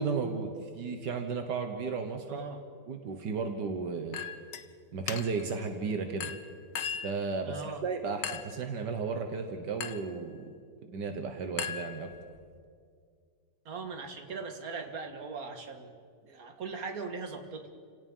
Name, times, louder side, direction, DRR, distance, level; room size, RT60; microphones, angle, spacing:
voice 1, 0.0-2.4 2.9-4.2 4.9-6.3 7.0-10.5 10.8-12.1, right 5 dB, 80° right, 5 dB, 1.9 m, -34 dB
voice 2, 2.3-2.6 7.4-7.8 13.7-15.9 16.2-17.7, right 4 dB, 55° right, 5 dB, 2.2 m, -39 dB
Chink clink, 4.1-4.7 5.1-5.5 6.2-7.2 8.2-8.6 9.8-10.1 11.6-12.4, left 8 dB, 55° left, 1.2 m, -38 dB
29.0 x 17.5 x 5.5 m, 2.1 s
omnidirectional pair, 1.8 m